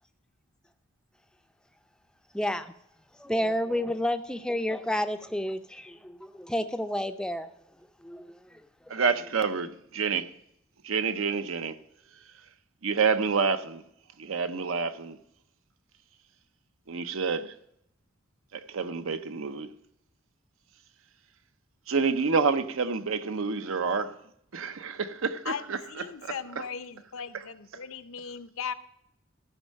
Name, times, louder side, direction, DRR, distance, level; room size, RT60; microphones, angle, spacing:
voice 1, 2.3-2.7 3.2-7.5 8.0-8.3, left 1 dB, 5° left, 0.4 m, -30 dB
voice 2, 8.9-10.3 10.8-11.8 12.8-13.8 14.2-15.2 16.9-17.5 18.5-19.7 21.9-24.1 24.5-25.8 26.2-26.3 27.3-27.4, right 5 dB, 70° right, 0.6 m, -28 dB
voice 3, 25.4-28.7, left 7 dB, 70° left, 0.6 m, -38 dB
13.5 x 5.4 x 6.3 m
head